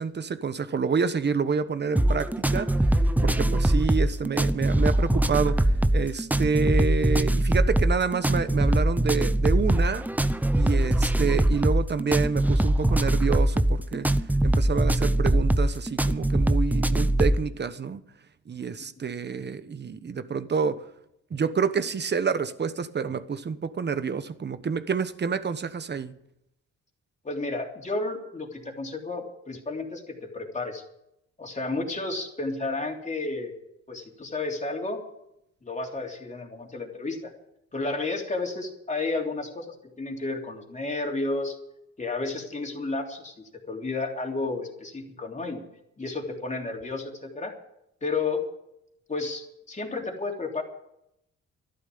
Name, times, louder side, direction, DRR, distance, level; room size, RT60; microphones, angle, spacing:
voice 1, 0.0-3.0 3.2-10.0 10.5-14.1 14.4-18.0 18.5-20.8 21.3-26.1, right 5 dB, 35° right, 1.2 m, -28 dB
sound 1, 2.0-17.4, right 1 dB, 5° right, 0.7 m, -22 dB
voice 2, 27.2-30.8 31.4-33.5 33.9-35.0 35.6-37.3 37.7-41.5 42.0-43.3 43.7-45.6 46.0-47.5 48.0-48.4 49.1-50.6, left 3 dB, 25° left, 3.3 m, -32 dB
12.5 x 11.5 x 8.6 m
cardioid pair, 90°, 30 cm